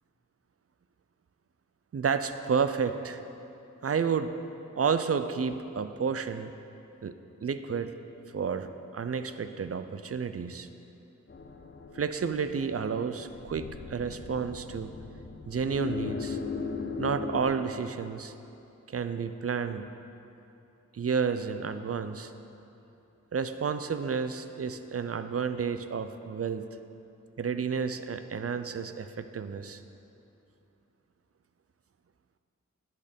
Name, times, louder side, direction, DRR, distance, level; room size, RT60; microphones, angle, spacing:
voice 1, 1.9-3.2 3.8-4.3 4.7-6.5 7.0-7.1 7.4-7.9 8.3-10.7 11.9-14.9 15.5-16.4 17.0-18.3 18.9-19.9 20.9-22.3 23.3-26.6 27.4-29.8, right 6 dB, 50° right, 10 dB, 0.5 m, -31 dB
sound 1, 11.3-17.4, left 4 dB, 40° left, 0.8 m, -38 dB
10.5 x 6.6 x 5.2 m, 2.8 s
wide cardioid pair, 55°, 30 cm